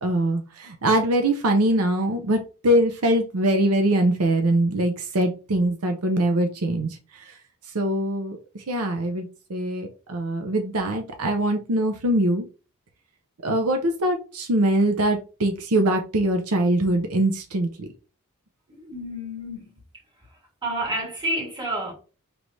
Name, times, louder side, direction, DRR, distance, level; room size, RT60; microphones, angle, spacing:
voice 1, 0.0-7.4 7.7-12.4 13.4-17.9, right 1 dB, 75° right, 0.6 m, -23 dB
voice 2, 18.7-19.8 20.2-21.9, right 1 dB, 20° right, 1.7 m, -30 dB
4.5 x 3.3 x 2.7 m
head